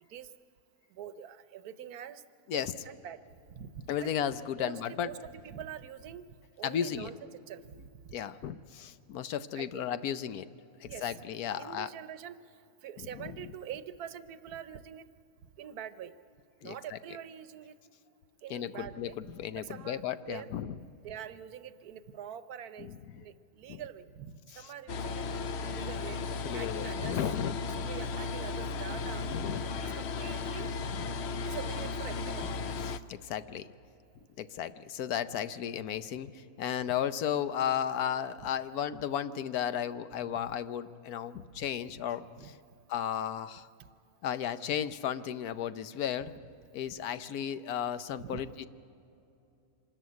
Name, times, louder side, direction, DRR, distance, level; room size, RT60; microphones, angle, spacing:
voice 1, 0.9-2.2 2.5-3.2 3.5-4.1 4.6-6.3 6.6-7.2 7.5-8.2 9.5-9.9 10.8-11.1 11.6-15.1 15.6-16.1 16.6-17.8 18.4-19.1 19.6-20.0 20.3-20.5 21.0-26.2 26.5-27.2 27.6-30.7 31.4-32.6 38.4-38.5 40.3-40.4 41.5-41.7 42.4-42.5 43.8-43.9 48.2-48.5, right 9 dB, 90° right, 13 dB, 1.3 m, -45 dB
voice 2, 3.9-5.1 6.6-7.1 8.1-10.5 10.8-11.9 13.1-13.3 16.6-17.0 18.5-20.7 22.8-23.2 23.7-23.8 24.5-24.7 26.4-27.9 29.2-29.7 30.8-31.1 32.9-33.7 34.4-42.5 42.9-43.7 44.2-46.3 46.7-48.7, left 9 dB, 85° left, 13 dB, 1.2 m, -34 dB
sound 1, 24.9-33.0, left 4 dB, 55° left, 0.8 m, -35 dB
25.5 x 13.5 x 9.4 m, 2.7 s
omnidirectional pair, 1.6 m